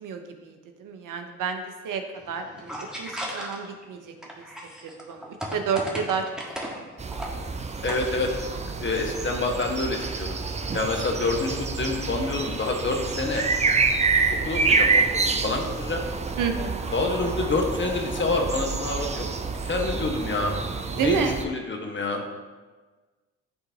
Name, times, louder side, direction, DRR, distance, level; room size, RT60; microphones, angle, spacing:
voice 1, 0.0-2.0 2.3-2.7 3.0-4.1 4.8-5.2 5.5-6.2 16.4-16.9 20.9-21.4, right 6 dB, 55° right, 6 dB, 0.8 m, -29 dB
sound 1, 2.2-3.8 4.2-6.8 7.1-7.3 7.7-8.3, equal, ahead, 1.5 m, -35 dB
sound 2, 7.0-21.4, right 4 dB, 20° right, 0.5 m, -27 dB
voice 2, 7.8-8.3 8.8-10.4 10.7-13.5 14.4-16.0 16.9-19.3 19.6-20.6 20.9-22.3, left 3 dB, 30° left, 2 dB, 1.2 m, -27 dB
11.5 x 3.9 x 2.8 m, 1.3 s
hypercardioid pair, 50°, 38 cm